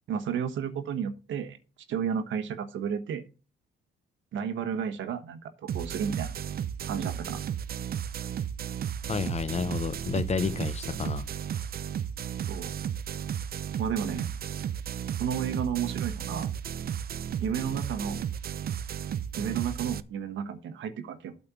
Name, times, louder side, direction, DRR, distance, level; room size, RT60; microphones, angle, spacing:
voice 1, 0.1-1.6 1.9-3.2 4.3-6.3 6.8-7.4 12.4-12.8 13.8-14.3 15.2-16.5 17.4-18.2 19.4-21.4, right 7 dB, 75° right, 1.2 m, -32 dB
sound 1, 5.7-20.0, right 9 dB, 50° right, 0.6 m, -34 dB
voice 2, 9.1-11.3, left 5 dB, 35° left, 0.8 m, -30 dB
8.5 x 4.3 x 6.9 m
cardioid pair, 90°, 20 cm